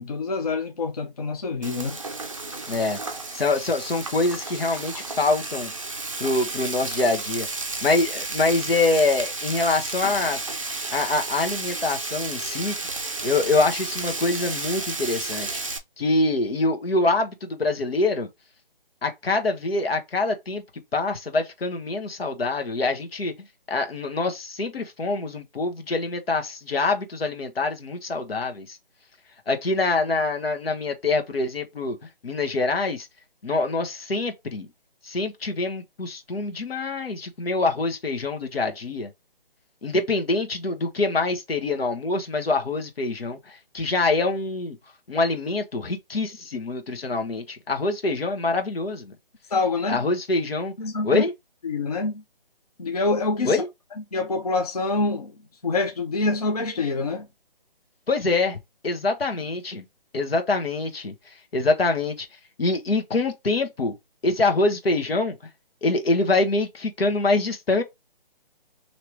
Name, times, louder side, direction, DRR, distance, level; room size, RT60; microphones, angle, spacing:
voice 1, 0.0-2.0 49.5-50.0 50.8-51.2 51.6-52.2 52.8-53.6 54.1-55.3 55.6-57.3, left 3 dB, 40° left, 0.5 m, -26 dB
Frying (food), 1.6-15.8, right 3 dB, 35° right, 0.4 m, -32 dB
voice 2, 2.7-3.0 3.3-5.7 6.2-7.5 7.8-10.5 10.9-12.7 13.2-15.6 16.0-18.3 19.0-20.6 20.9-23.3 23.7-28.8 29.5-32.0 32.2-33.1 33.4-34.7 35.0-39.1 39.8-44.8 45.1-49.1 49.9-50.7 51.0-51.3 53.4-53.7 58.1-58.6 58.8-59.8 60.1-62.3 62.6-63.9 64.2-65.4 65.8-67.8, left 3 dB, 80° left, 1.3 m, -25 dB
3.1 x 2.9 x 4.6 m
hypercardioid pair, 170°, 29 cm